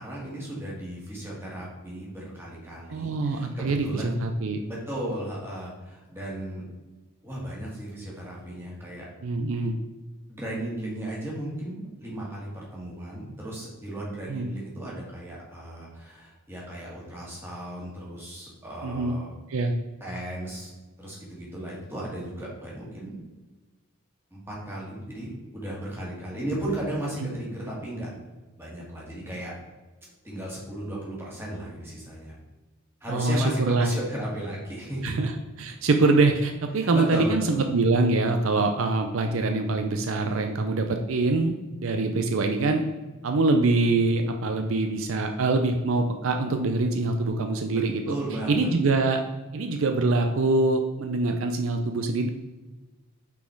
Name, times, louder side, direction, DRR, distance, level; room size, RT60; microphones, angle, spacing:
voice 1, 0.0-4.1 4.7-6.6 7.2-9.1 10.3-19.3 20.0-20.7 21.0-23.2 24.3-28.1 28.6-29.5 30.2-32.3 33.0-35.1 36.8-37.6 48.1-48.7, right 1 dB, 10° right, -5 dB, 1.9 m, -35 dB
voice 2, 2.9-4.6 9.2-9.8 14.3-14.5 18.8-19.2 19.5-19.7 27.2-27.3 33.1-33.9 35.0-42.8 43.2-48.2 48.5-49.2 49.5-52.3, right 3 dB, 65° right, 5 dB, 0.5 m, -24 dB
5.8 x 4.2 x 4.6 m, 1.2 s
head